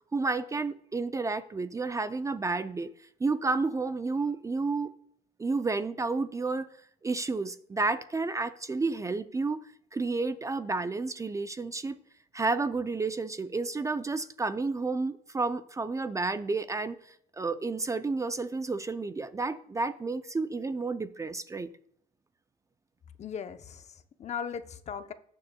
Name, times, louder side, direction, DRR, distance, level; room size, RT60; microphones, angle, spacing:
voice 1, 0.1-2.9 3.2-4.9 5.4-6.7 7.0-9.6 9.9-12.0 12.3-17.0 17.4-21.7, right 3 dB, 20° right, 0.4 m, -31 dB
voice 2, 23.2-25.1, left 7 dB, 40° left, 0.7 m, -38 dB
19.0 x 6.8 x 2.2 m
cardioid pair, 110°, 17 cm